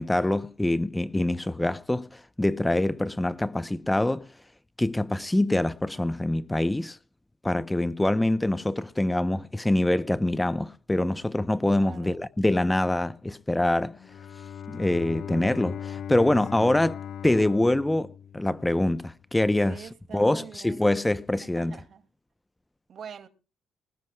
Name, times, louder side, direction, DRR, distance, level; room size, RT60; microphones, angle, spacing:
voice 1, 0.0-4.3 4.8-7.0 7.4-14.0 14.7-17.0 17.2-21.8, left 1 dB, 10° left, 0.8 m, -25 dB
voice 2, 11.8-12.2 16.6-16.8 19.7-21.0 21.4-22.0 22.9-23.3, right 7 dB, 60° right, 2.4 m, -45 dB
Bowed string instrument, 14.0-19.0, left 8 dB, 70° left, 1.1 m, -39 dB
20.5 x 20.0 x 2.3 m
cardioid pair, 90°, 0 cm